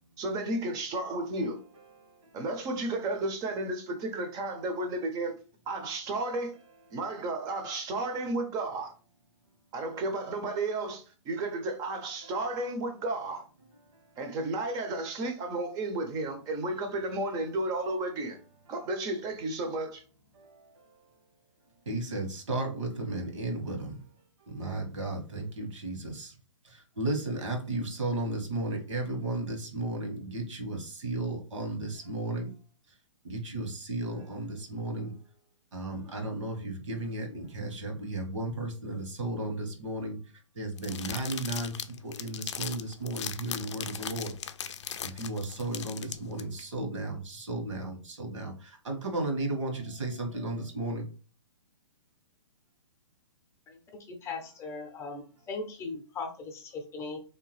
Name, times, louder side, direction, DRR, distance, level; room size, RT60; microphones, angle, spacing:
voice 1, 0.2-1.6 2.3-5.4 5.7-6.6 6.9-8.9 9.7-13.4 14.2-18.4 18.7-20.0, right 2 dB, 25° right, 0.7 m, -33 dB
voice 2, 21.9-24.0 24.5-26.3 27.0-32.5 33.2-35.1 35.7-40.2 40.6-41.7 42.0-44.3 45.0-48.5 48.8-51.0 54.6-54.8, right 2 dB, 70° right, 1.5 m, -34 dB
sound 1, 40.8-46.4, left 8 dB, 60° left, 0.5 m, -38 dB
voice 3, 54.1-57.2, left 4 dB, 15° left, 0.7 m, -38 dB
3.5 x 2.9 x 3.2 m
hypercardioid pair, 130°, 16 cm